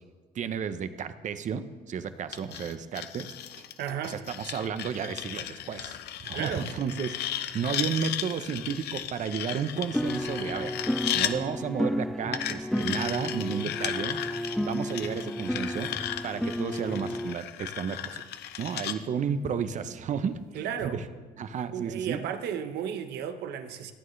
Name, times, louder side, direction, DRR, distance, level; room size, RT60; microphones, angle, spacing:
voice 1, 0.3-3.6 4.0-10.7 11.1-14.2 14.6-15.9 16.2-18.2 18.6-20.4 20.8-21.1 21.4-22.2, right 7 dB, 45° right, 11 dB, 0.8 m, -32 dB
sound 1, 2.3-11.3 12.3-19.0, left 11 dB, 75° left, 0.8 m, -35 dB
voice 2, 3.8-4.2 6.3-6.7 20.5-21.0 21.7-23.9, right 8 dB, 75° right, 8 dB, 1.1 m, -34 dB
sound 2, 9.9-17.3, equal, ahead, 0.3 m, -32 dB
27.0 x 9.2 x 3.3 m, 1.4 s
cardioid pair, 110°, 17 cm